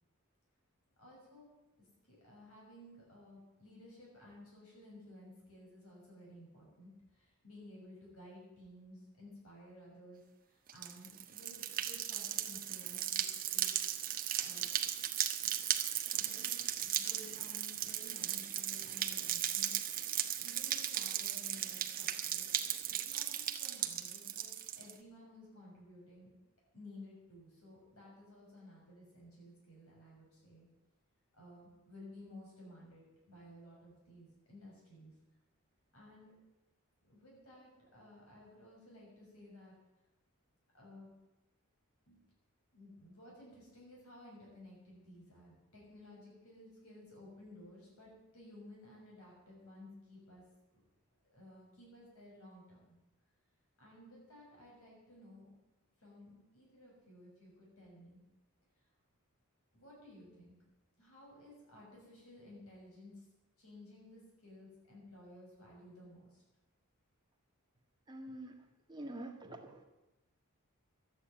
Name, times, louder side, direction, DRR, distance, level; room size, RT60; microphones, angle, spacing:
voice 1, 1.0-1.5 1.8-13.8 14.1-14.7 15.3-15.6 16.1-19.8 20.4-22.5 22.8-26.3 26.7-30.7 31.3-35.1 35.9-36.3 37.0-39.7 40.7-41.1 42.1-42.3 42.7-50.4 51.3-53.0 53.8-55.5 56.0-58.2 59.7-60.5 61.0-63.2 63.6-66.4, left 1 dB, 70° left, -4 dB, 6.6 m, -56 dB
sound 1, 10.7-24.9, right 11 dB, 40° right, 1.0 m, -37 dB
voice 2, 68.1-68.6 68.9-69.8, right 1 dB, 20° right, 2 dB, 1.7 m, -46 dB
12.5 x 9.2 x 9.1 m, 0.99 s
head